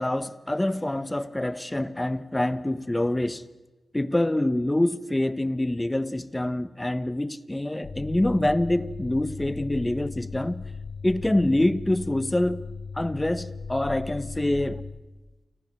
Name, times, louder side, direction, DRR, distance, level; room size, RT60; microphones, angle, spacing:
voice 1, 0.0-3.4 3.9-10.6 11.0-12.6 12.9-14.8, left 1 dB, 15° left, 1.2 m, -26 dB
sound 1, 7.8-14.9, left 5 dB, 80° left, 5.1 m, -37 dB
29.0 x 25.5 x 7.5 m
wide cardioid pair, 90°, 0 cm